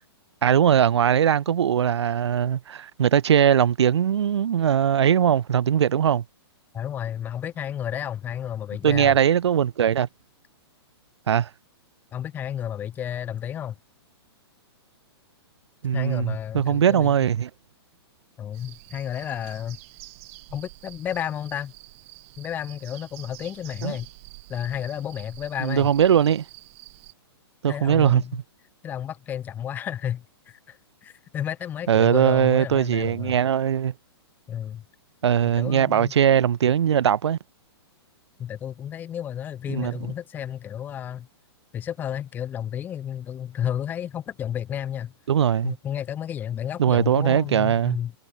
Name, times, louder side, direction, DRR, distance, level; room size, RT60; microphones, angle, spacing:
voice 1, 0.4-6.2 8.8-10.1 11.3-11.5 15.8-17.5 23.8-23.9 25.6-26.4 27.6-28.4 31.9-33.9 35.2-37.4 39.7-39.9 45.3-45.7 46.8-48.0, right 9 dB, 80° right, 1.0 m, -20 dB
voice 2, 6.7-9.2 12.1-13.7 15.9-17.2 18.4-19.8 20.5-21.7 22.4-24.1 24.5-25.9 27.7-28.4 28.8-33.3 34.5-34.8 35.4-36.1 38.4-41.3 41.7-45.1 45.6-48.1, left 10 dB, 15° left, 1.1 m, -32 dB
sound 1, 18.5-27.1, right 24 dB, 30° right, 1.3 m, -47 dB
hypercardioid pair, 165°, 14 cm